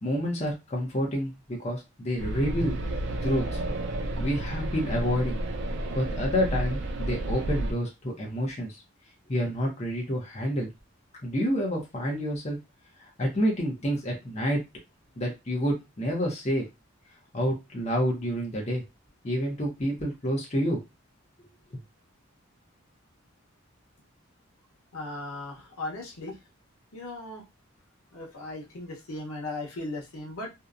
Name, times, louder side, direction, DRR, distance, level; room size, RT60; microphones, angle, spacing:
voice 1, 0.0-2.7 3.2-3.6 4.2-5.4 5.9-8.7 9.3-10.7 11.2-12.6 13.2-14.6 15.2-16.7 17.3-18.8 19.2-20.8, equal, 30° left, -1 dB, 0.6 m, -28 dB
sound 1, 2.2-7.7, right 1 dB, 55° right, 0.3 m, -31 dB
voice 2, 24.9-26.4 26.9-27.4 28.1-30.5, left 2 dB, 85° left, 0 dB, 0.8 m, -37 dB
2.7 x 2.1 x 2.4 m, 0.23 s
head